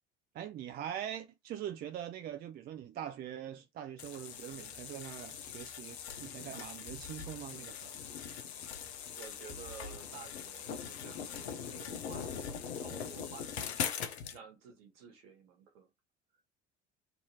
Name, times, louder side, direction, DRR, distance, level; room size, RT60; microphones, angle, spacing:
voice 1, 0.3-8.0, right 10 dB, 30° right, 0.4 m, -43 dB
sound 1, 4.0-14.4, left 7 dB, 70° left, 0.6 m, -41 dB
voice 2, 9.2-13.8 14.3-15.9, right 7 dB, 60° right, 1.2 m, -53 dB
2.7 x 2.6 x 2.7 m
figure-of-eight pair, 65°, 34 cm